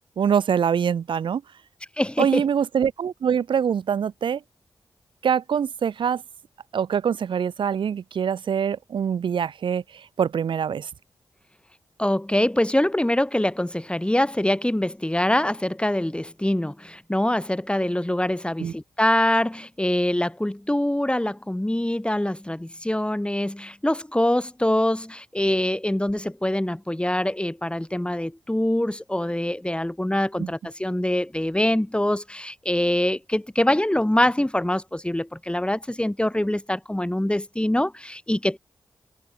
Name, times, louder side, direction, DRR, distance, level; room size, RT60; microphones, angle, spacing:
voice 1, 0.2-1.4 2.2-4.4 5.2-6.2 6.7-10.9 18.6-18.7 30.4-30.5, right 7 dB, 85° right, 5.7 m, -24 dB
voice 2, 2.0-2.5 12.0-38.6, left 1 dB, 10° left, 5.9 m, -24 dB
open air
cardioid pair, 40°, 8 cm